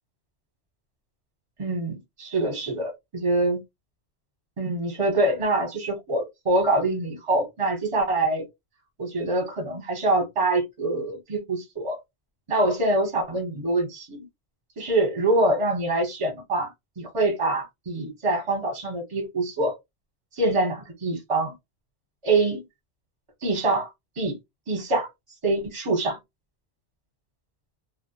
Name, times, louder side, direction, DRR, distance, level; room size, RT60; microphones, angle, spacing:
voice 1, 1.6-3.6 4.6-8.5 9.0-12.0 12.5-14.3 14.8-19.7 20.3-21.5 22.2-22.6 23.4-23.9 24.2-24.4 24.7-25.1 25.4-26.2, right 2 dB, 30° right, 0.9 m, -25 dB
2.1 x 2.1 x 2.7 m
omnidirectional pair, 1.2 m